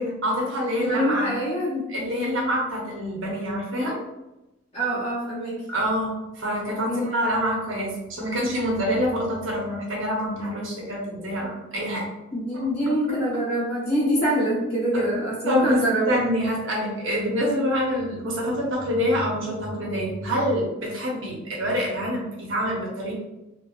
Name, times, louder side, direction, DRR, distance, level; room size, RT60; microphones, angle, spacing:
voice 1, 0.0-1.3 1.9-4.0 5.7-12.1 12.6-12.7 14.9-15.1 15.5-23.1, equal, 75° right, -2 dB, 0.8 m, -26 dB
voice 2, 0.7-1.9 4.7-5.6 6.9-7.1 12.3-16.2, equal, 35° left, -7 dB, 1.0 m, -25 dB
2.8 x 2.2 x 2.4 m, 0.95 s
head